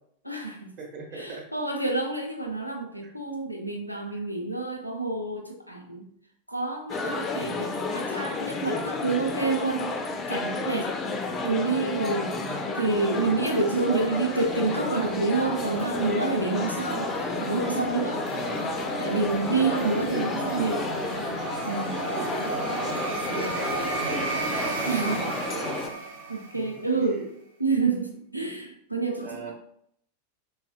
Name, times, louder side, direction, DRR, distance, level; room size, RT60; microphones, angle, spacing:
voice 1, 0.2-0.7 1.1-6.0 6.5-10.0 10.3-10.9 11.4-12.3 12.7-17.1 17.4-18.3 19.0-20.8 21.6-22.0 24.8-25.4 26.3-27.3 27.6-29.5, right 3 dB, 90° left, 3 dB, 0.4 m, -28 dB
voice 2, 0.8-1.5 3.0-3.1 4.1-4.2 7.3-7.7 12.3-12.7 18.3-18.6 19.5-20.3 20.6-20.7 22.1-24.3 25.5-25.9 26.5-27.2 29.2-29.5, right 3 dB, 40° right, -1 dB, 0.8 m, -39 dB
sound 1, 6.9-25.9, left 3 dB, 25° left, 0.3 m, -31 dB
sound 2, 12.3-26.9, right 3 dB, 60° right, 0.5 m, -35 dB
3.1 x 2.3 x 2.7 m, 0.70 s
figure-of-eight pair, 90°, 0 cm